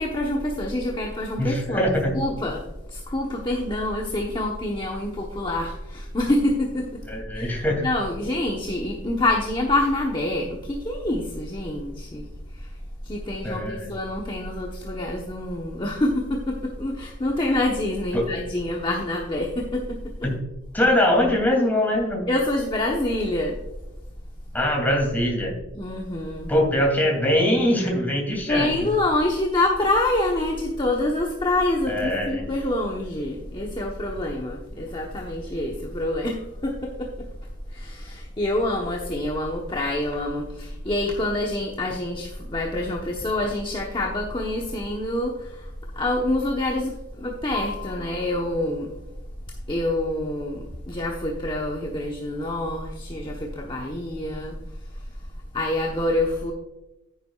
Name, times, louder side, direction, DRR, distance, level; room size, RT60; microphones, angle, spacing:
voice 1, 0.0-1.9 2.1-2.6 2.9-7.0 7.3-12.3 12.6-12.7 13.0-20.0 22.3-23.6 25.7-26.5 28.5-37.1 37.7-45.7 46.0-48.9 49.7-54.5 55.5-56.5, left 1 dB, 25° left, -1 dB, 1.0 m, -26 dB
voice 2, 1.4-2.1 7.1-7.9 13.4-13.9 18.1-18.2 20.2-20.3 20.7-22.3 24.5-25.6 26.5-28.7 31.9-32.5, left 1 dB, 10° left, -1 dB, 2.8 m, -22 dB
10.0 x 10.0 x 2.4 m, 0.96 s
head